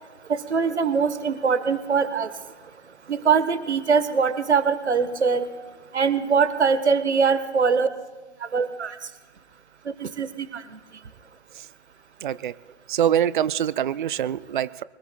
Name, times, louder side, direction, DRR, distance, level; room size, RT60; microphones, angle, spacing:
voice 1, 0.3-2.3 3.1-5.5 5.9-7.9 8.5-8.9 10.0-10.5, right 5 dB, 70° right, 12 dB, 1.3 m, -22 dB
voice 2, 12.2-12.5 12.9-14.8, right 10 dB, 45° right, 17 dB, 0.5 m, -24 dB
24.0 x 20.5 x 2.3 m, 1.4 s
figure-of-eight pair, 130°, 35 cm